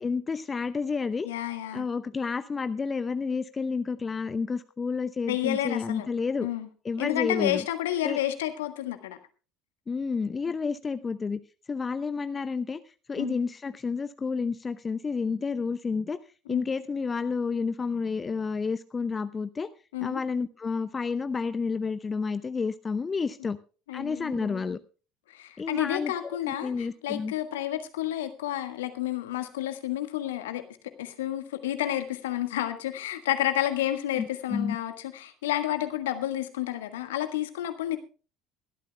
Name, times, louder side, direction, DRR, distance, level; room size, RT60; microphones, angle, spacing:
voice 1, 0.0-1.3 1.7-6.5 6.8-7.6 8.0-8.2 9.9-11.4 11.7-12.8 13.1-16.2 16.5-19.7 20.0-23.6 23.9-24.8 25.6-26.1 26.6-27.3 34.2-34.8, left 5 dB, 25° left, 13 dB, 0.7 m, -30 dB
voice 2, 1.2-1.9 5.3-6.1 6.4-6.7 7.0-9.2 13.2-13.4 16.5-16.6 19.9-20.2 23.9-24.8 25.3-30.6 31.0-38.0, left 13 dB, 70° left, 9 dB, 1.5 m, -30 dB
23.0 x 12.5 x 2.2 m, 0.36 s
figure-of-eight pair, 65°, 0 cm